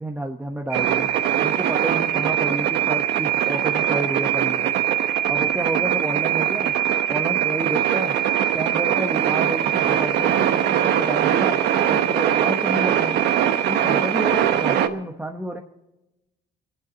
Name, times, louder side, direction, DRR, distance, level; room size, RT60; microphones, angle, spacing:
voice 1, 0.0-1.1 1.4-4.7 5.3-6.7 7.1-8.2 8.5-11.6 11.9-13.2 13.7-15.6, right 1 dB, 10° right, 2 dB, 1.1 m, -30 dB
sound 1, 0.7-14.9, right 10 dB, 80° right, 1.0 m, -21 dB
28.5 x 11.0 x 4.0 m, 0.98 s
cardioid pair, 110°, 17 cm